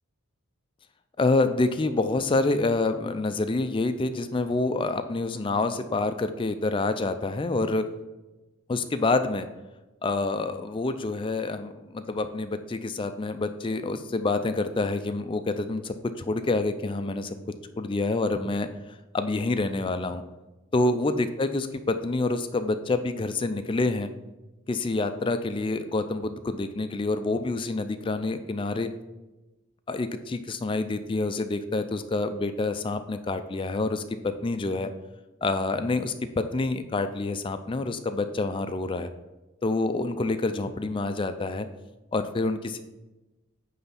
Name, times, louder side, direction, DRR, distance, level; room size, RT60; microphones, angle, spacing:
voice 1, 1.2-7.9 8.7-9.5 10.0-17.4 17.8-18.7 19.1-20.2 20.7-24.1 24.7-28.9 29.9-34.9 35.4-39.1 39.6-41.7 42.1-42.8, left 3 dB, 25° left, 9 dB, 0.3 m, -27 dB
9.4 x 3.4 x 5.7 m, 1.1 s
head